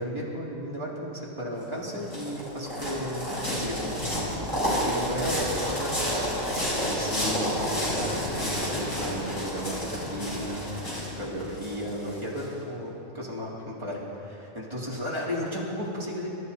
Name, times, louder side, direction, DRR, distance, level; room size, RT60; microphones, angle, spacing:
voice 1, 0.0-16.3, equal, 20° right, -7 dB, 3.6 m, -34 dB
sound 1, 1.6-12.4, equal, 85° left, 5.1 m, -30 dB
26.0 x 13.5 x 4.2 m, 2.9 s
omnidirectional pair, 1.4 m